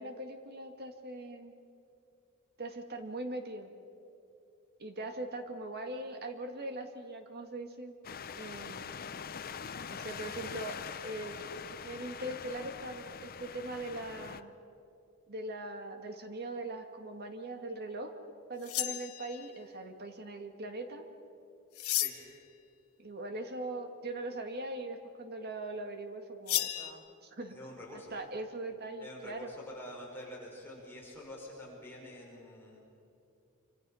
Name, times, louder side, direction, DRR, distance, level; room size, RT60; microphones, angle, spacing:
voice 1, 0.0-1.5 2.6-3.7 4.8-7.9 8.4-8.9 9.9-11.4 11.8-14.5 15.3-18.1 18.5-21.1 23.0-27.6 27.9-29.5, right 2 dB, 45° right, 5 dB, 2.0 m, -41 dB
sound 1, 8.0-14.4, left 6 dB, 45° left, 0.7 m, -43 dB
sound 2, 18.6-19.6 21.7-22.4 26.5-26.9, left 14 dB, 80° left, 1.2 m, -33 dB
voice 2, 27.5-28.1 29.0-32.8, left 1 dB, 10° left, -4 dB, 5.6 m, -47 dB
27.0 x 26.0 x 5.7 m, 2.5 s
head